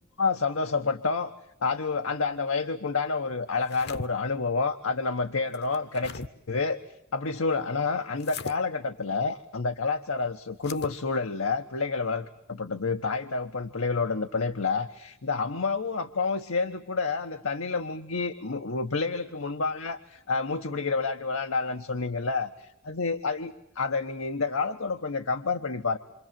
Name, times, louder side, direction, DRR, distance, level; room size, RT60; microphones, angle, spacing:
voice 1, 0.2-1.3 1.6-6.8 7.1-23.5 23.8-26.0, left 4 dB, 85° left, 7 dB, 1.1 m, -29 dB
sound 1, 3.5-4.1 5.5-6.3 8.2-8.6 10.6-11.0, left 3 dB, 55° left, 1.0 m, -39 dB
27.5 x 25.5 x 7.6 m, 0.82 s
head